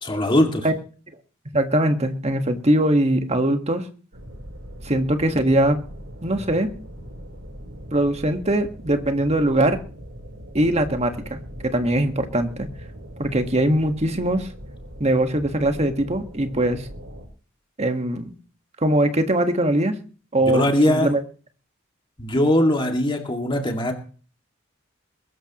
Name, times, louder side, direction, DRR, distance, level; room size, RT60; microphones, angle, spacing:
voice 1, 0.0-0.7 20.4-21.1 22.2-23.9, left 1 dB, 25° left, 3 dB, 2.3 m, -20 dB
voice 2, 1.5-3.8 4.8-5.8 6.2-6.7 7.9-9.8 10.5-12.7 13.2-14.5 15.0-16.9 17.8-18.3 18.8-20.0 20.3-21.2, right 1 dB, 30° right, 6 dB, 1.6 m, -21 dB
sound 1, 4.1-17.3, equal, 75° right, 4.1 m, -40 dB
22.5 x 12.5 x 3.1 m, 0.40 s
head